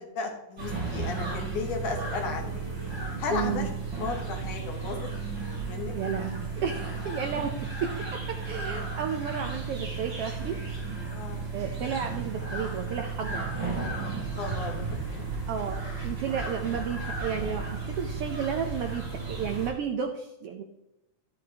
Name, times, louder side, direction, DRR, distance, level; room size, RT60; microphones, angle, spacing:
voice 1, 0.0-2.5 3.2-3.7 4.0-5.0 5.6-5.9 11.1-11.5 14.4-14.7, left 4 dB, 85° left, 2 dB, 3.2 m, -34 dB
sound 1, 0.6-19.7, right 4 dB, 40° right, 5.1 m, -34 dB
voice 2, 3.3-3.7 5.9-7.9 8.3-10.6 11.5-13.4 15.5-20.6, right 7 dB, 75° right, 4 dB, 1.4 m, -32 dB
13.0 x 8.8 x 2.9 m, 0.93 s
omnidirectional pair, 3.4 m